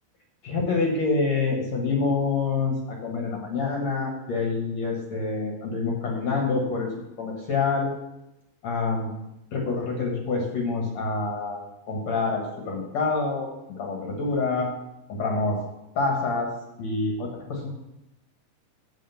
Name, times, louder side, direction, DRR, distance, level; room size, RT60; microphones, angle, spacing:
voice 1, 0.4-6.9 7.2-7.9 8.6-9.1 9.5-13.5 13.8-14.7 15.2-15.6 16.0-16.5 16.8-17.7, left 4 dB, 55° left, 0 dB, 2.1 m, -26 dB
7.6 x 7.5 x 7.0 m, 0.89 s
omnidirectional pair, 4.7 m